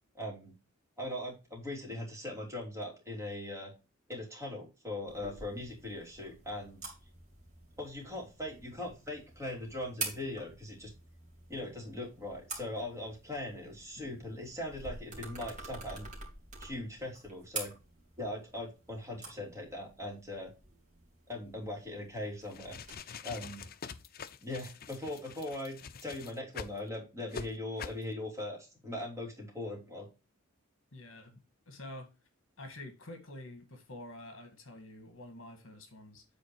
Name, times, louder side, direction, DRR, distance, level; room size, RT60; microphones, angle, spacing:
voice 1, 0.1-0.5 1.0-3.7 4.1-6.9 7.8-10.9 11.5-16.1 16.6-17.7 18.2-20.5 21.3-22.8 23.2-23.6 24.4-30.1, left 1 dB, 15° right, 3.3 m, -40 dB
sound 1, 5.1-22.9, right 3 dB, 35° right, 2.8 m, -47 dB
voice 2, 14.0-14.3 30.9-31.4 31.7-32.1 32.6-36.2, left 1 dB, 65° left, 1.8 m, -48 dB
sound 2, 22.4-26.8 27.3-27.5 27.8-28.0, left 6 dB, 45° left, 0.6 m, -45 dB
9.0 x 4.4 x 4.6 m
head